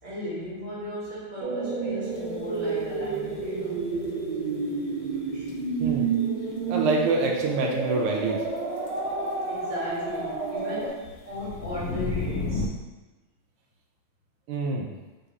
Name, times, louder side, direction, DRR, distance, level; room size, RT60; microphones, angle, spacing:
voice 1, 0.0-3.8 5.1-5.5 9.5-12.7, left 1 dB, 35° right, -9 dB, 1.5 m, -36 dB
sound 1, 1.4-10.9, right 4 dB, 70° right, 1.4 m, -30 dB
sound 2, 2.2-2.3 5.5-5.6 8.3-9.3 10.1-10.5 10.8-12.7, left 3 dB, 80° left, 0.8 m, -31 dB
voice 2, 5.8-6.1 6.7-8.4 14.5-14.9, right 3 dB, 85° right, 0 dB, 1.5 m, -26 dB
3.7 x 2.7 x 4.6 m, 1.1 s
omnidirectional pair, 2.4 m